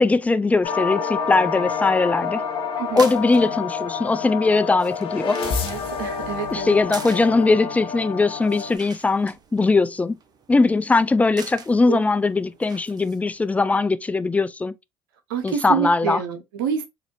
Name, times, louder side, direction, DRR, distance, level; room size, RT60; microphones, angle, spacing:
voice 1, 0.0-2.4 3.0-5.4 6.5-10.2 10.5-14.7 15.4-16.2, left 3 dB, 10° left, 0.4 m, -20 dB
sound 1, 0.6-8.8, left 6 dB, 55° left, 1.4 m, -28 dB
sound 2, 2.7-13.5, right 5 dB, 35° right, 0.8 m, -44 dB
voice 2, 2.8-3.1 5.5-6.8 11.9-12.0 15.3-16.9, right 7 dB, 75° right, 0.7 m, -27 dB
4.1 x 2.5 x 3.0 m
hypercardioid pair, 65°, 12 cm